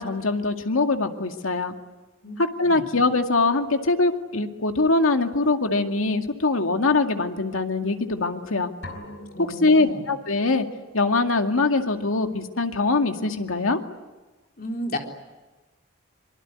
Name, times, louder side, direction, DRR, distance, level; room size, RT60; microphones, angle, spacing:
voice 1, 0.0-1.7 2.6-8.7 9.4-10.7 10.9-13.8, left 3 dB, 90° left, 5 dB, 2.3 m, -23 dB
sound 1, 8.8-10.6, left 1 dB, 65° left, 5.0 m, -42 dB
voice 2, 9.3-10.1 14.6-15.0, equal, 45° left, 2 dB, 3.9 m, -33 dB
25.5 x 24.0 x 9.7 m, 1.2 s
head